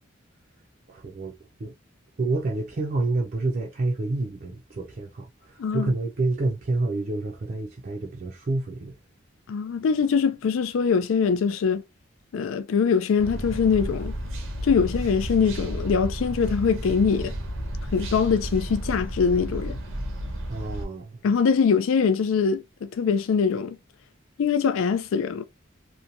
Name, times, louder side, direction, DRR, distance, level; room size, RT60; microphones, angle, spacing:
voice 1, 0.9-1.3 1.6-1.7 2.2-9.0 20.5-21.2, right 2 dB, 45° right, 0.4 m, -28 dB
voice 2, 5.6-5.9 9.5-11.8 12.3-14.1 14.6-17.3 17.9-19.8 21.2-23.8 24.4-25.4, left 6 dB, 80° left, 0.4 m, -23 dB
sound 1, 13.2-20.9, equal, 80° right, 0.8 m, -32 dB
2.9 x 2.2 x 2.5 m
head